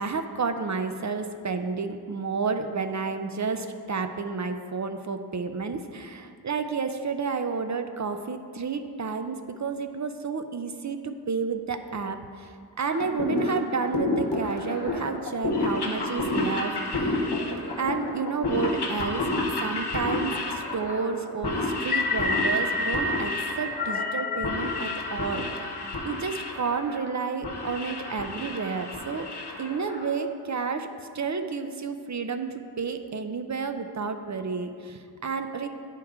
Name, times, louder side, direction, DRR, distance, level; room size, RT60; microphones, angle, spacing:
voice 1, 0.0-17.2 17.8-19.3 19.6-25.7 26.0-29.3 29.6-30.9 31.1-35.7, right 5 dB, 45° right, 8 dB, 0.5 m, -31 dB
sound 1, 12.8-30.2, left 2 dB, 80° left, 0.9 m, -30 dB
sound 2, 21.8-26.1, left 2 dB, 25° left, 0.5 m, -29 dB
10.5 x 4.6 x 3.6 m, 2.2 s
wide cardioid pair, 55°, 39 cm